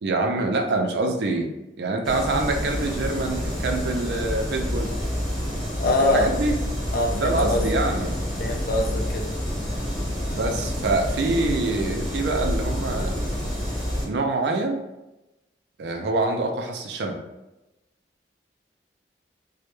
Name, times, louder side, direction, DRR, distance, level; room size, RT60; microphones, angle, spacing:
voice 1, 0.0-1.5 1.8-4.9 6.0-6.6 7.1-8.2 10.3-13.4 14.0-14.8 15.8-17.2, right 2 dB, 65° right, 4 dB, 0.3 m, -25 dB
sound 1, 2.0-14.1, equal, 5° left, 0.6 m, -28 dB
voice 2, 5.8-6.3 6.9-7.6 8.4-9.3, left 2 dB, 50° left, 3 dB, 0.3 m, -23 dB
2.1 x 2.0 x 3.0 m, 0.97 s
head